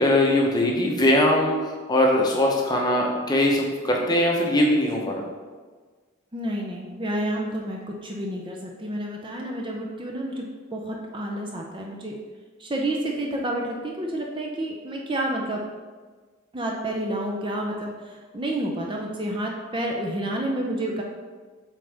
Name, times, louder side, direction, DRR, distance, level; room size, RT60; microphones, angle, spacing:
voice 1, 0.0-5.2, left 1 dB, 20° left, -1 dB, 0.8 m, -21 dB
voice 2, 6.3-12.2 12.6-15.6 16.5-21.0, right 1 dB, 25° right, 0 dB, 0.5 m, -29 dB
7.3 x 3.9 x 3.4 m, 1.4 s
head